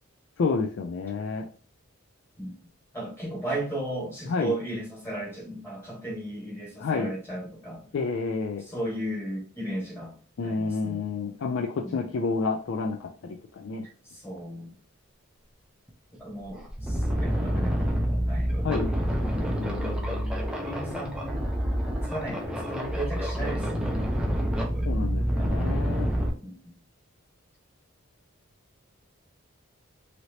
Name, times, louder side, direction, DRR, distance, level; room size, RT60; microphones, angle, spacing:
voice 1, 0.4-1.4 4.3-4.5 6.8-7.1 7.9-8.6 10.4-13.8 18.6-18.9 19.6-20.5 24.9-26.1, left 4 dB, 65° left, 2 dB, 0.4 m, -30 dB
voice 2, 2.9-7.9 8.6-10.1 10.4-11.1 11.8-12.1 14.0-14.7 16.2-18.9 19.3-19.7 20.6-24.1 25.4-25.7 26.4-26.7, right 1 dB, 10° left, -4 dB, 1.3 m, -36 dB
sound 1, 15.9-16.0 16.4-26.3, equal, 5° right, 0.4 m, -27 dB
3.1 x 2.8 x 2.7 m, 0.41 s
head